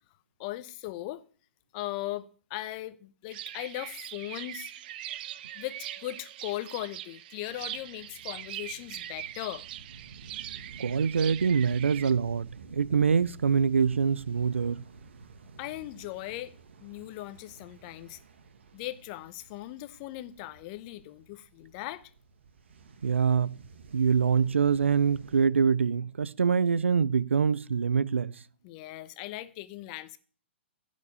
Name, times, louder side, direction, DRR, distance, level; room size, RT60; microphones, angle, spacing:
voice 1, 0.4-1.2 1.7-4.7 5.5-9.7 15.6-16.5 16.8-18.2 18.7-22.1 28.6-30.2, left 16 dB, 40° left, 0.9 m, -38 dB
sound 1, 3.3-12.1, right 12 dB, 50° right, 0.6 m, -41 dB
sound 2, 7.5-25.5, right 4 dB, 70° right, 1.4 m, -51 dB
voice 2, 10.8-14.8 23.0-23.6 23.9-28.3, right 6 dB, 85° right, 0.4 m, -25 dB
10.5 x 5.1 x 8.0 m
hypercardioid pair, 120°, 6 cm